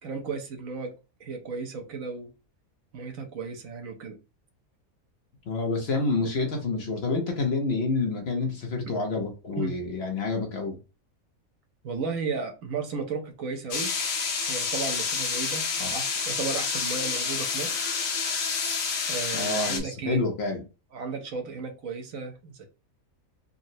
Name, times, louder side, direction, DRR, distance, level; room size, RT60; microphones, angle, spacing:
voice 1, 0.0-0.9 1.2-2.3 2.9-4.2 8.9-9.0 9.6-9.7 11.8-13.9 14.4-15.7 15.9-17.8 19.1-20.2 20.9-22.6, right 4 dB, 75° right, 1.1 m, -34 dB
voice 2, 5.5-10.8 15.8-15.9 19.3-20.6, left 3 dB, 55° left, 0.8 m, -28 dB
sound 1, 13.7-19.8, left 5 dB, 70° left, 1.2 m, -29 dB
3.7 x 2.0 x 2.6 m
omnidirectional pair, 1.5 m